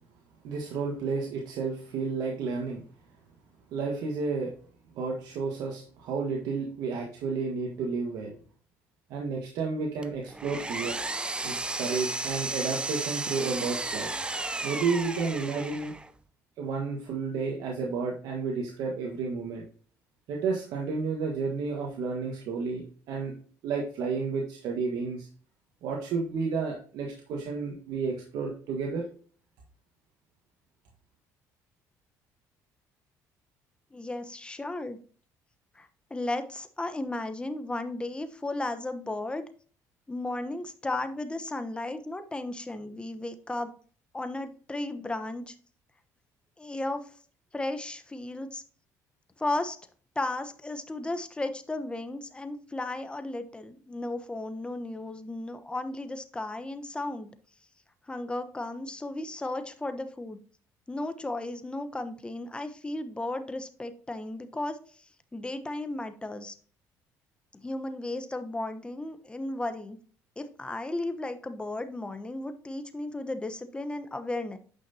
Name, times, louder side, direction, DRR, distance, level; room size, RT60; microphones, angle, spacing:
voice 1, 0.4-2.8 3.7-4.5 4.9-8.4 9.1-11.0 11.4-14.1 14.6-15.9 16.6-19.6 20.3-23.3 23.6-25.3 25.8-29.0, right 4 dB, 75° right, -1 dB, 1.5 m, -31 dB
Power tool, 10.0-16.1, right 2 dB, 15° right, 0.5 m, -33 dB
voice 2, 33.9-35.0 35.7-39.4 40.1-43.7 44.1-45.5 46.6-47.1 47.5-48.6 49.4-49.8 50.1-57.3 58.1-60.4 60.9-64.8 65.3-66.5 67.6-70.0 70.4-74.6, left 2 dB, 15° left, 9 dB, 1.0 m, -34 dB
9.1 x 5.6 x 2.8 m, 0.43 s
supercardioid pair, 90°, 7 cm